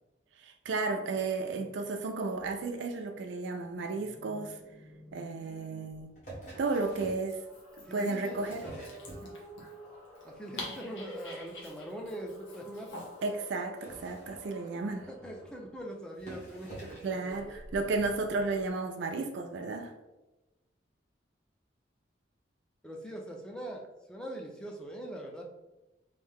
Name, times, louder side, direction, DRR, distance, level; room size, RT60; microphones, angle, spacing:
voice 1, 0.4-4.6 5.1-6.1 6.6-7.4 7.9-8.6 13.2-15.1 17.0-19.9, right 3 dB, 75° right, 5 dB, 0.4 m, -33 dB
sound 1, 2.2-2.6 3.7-6.1 6.8-15.8 17.2-18.7, equal, 20° left, 1.2 m, -51 dB
sound 2, 6.2-7.3 8.1-9.7 10.1-10.5 10.7-10.9 11.2-11.3 11.5-11.6 11.9-12.0 12.6-12.7 13.6-15.0 15.7-15.8 16.1-17.2 18.0-18.1, right 1 dB, 40° left, 1.3 m, -47 dB
Dog, 7.1-13.3, left 2 dB, 85° left, 1.0 m, -48 dB
voice 2, 7.8-8.9 9.2-9.3 10.2-12.9 15.1-17.6 22.8-25.4, right 1 dB, 5° left, 0 dB, 0.4 m, -42 dB
3.2 x 2.7 x 3.6 m, 1.0 s
head